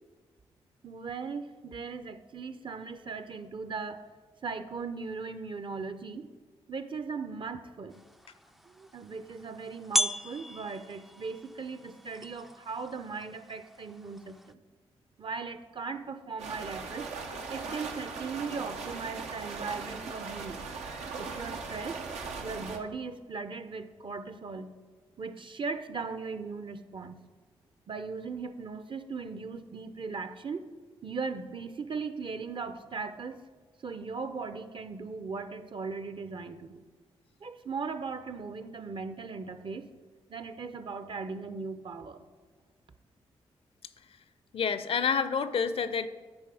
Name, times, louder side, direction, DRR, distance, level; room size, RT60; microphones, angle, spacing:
voice 1, 0.8-4.1 4.4-6.3 6.7-8.0 8.6-14.6 15.2-17.1 17.5-20.7 21.2-22.0 22.4-24.8 25.2-27.1 27.9-30.7 31.0-33.4 33.8-36.9 37.4-39.9 40.3-42.2, right 4 dB, 50° right, 11 dB, 0.6 m, -38 dB
sound 1, 7.9-14.5, equal, ahead, 0.3 m, -37 dB
sound 2, 16.4-22.8, right 4 dB, 85° right, 0.7 m, -39 dB
voice 2, 44.5-46.1, left 6 dB, 60° left, 13 dB, 0.5 m, -28 dB
9.6 x 4.2 x 4.8 m, 1.4 s
supercardioid pair, 45°, 11 cm